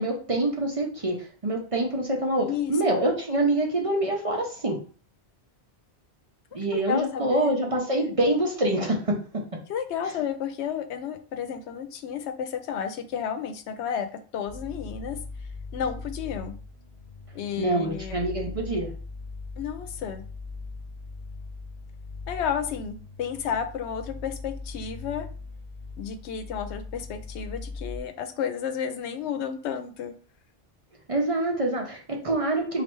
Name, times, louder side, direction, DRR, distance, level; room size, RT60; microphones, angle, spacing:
voice 1, 0.0-4.8 6.5-9.2 17.6-18.9 31.1-32.8, right 1 dB, 40° right, 0 dB, 0.6 m, -25 dB
voice 2, 2.5-3.1 6.7-7.6 7.9-8.0 9.7-15.2 15.7-16.5 17.3-18.2 19.6-20.2 22.3-25.3 26.0-30.1, left 8 dB, 85° left, 9 dB, 0.9 m, -32 dB
sound 1, 14.5-28.0, left 3 dB, 50° left, 1.1 m, -40 dB
3.2 x 2.5 x 4.4 m, 0.41 s
omnidirectional pair, 1.1 m